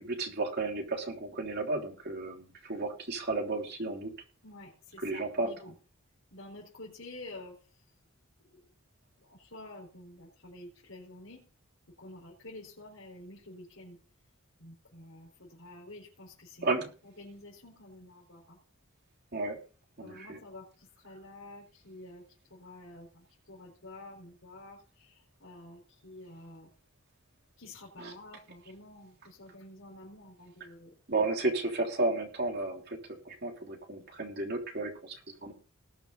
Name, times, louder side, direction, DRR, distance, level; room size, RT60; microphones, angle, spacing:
voice 1, 0.0-4.1 5.0-5.5 16.6-16.9 19.3-19.6 20.0-20.4 28.0-28.1 31.1-33.0 33.2-35.5, right 3 dB, 50° right, 2 dB, 3.3 m, -33 dB
voice 2, 4.4-5.7 6.3-7.8 8.4-8.6 9.2-11.5 12.0-14.0 14.6-16.7 17.0-18.6 20.0-22.2 22.5-26.7 27.6-30.9, left 1 dB, 65° left, -4 dB, 4.5 m, -49 dB
20.0 x 6.8 x 4.0 m, 0.38 s
head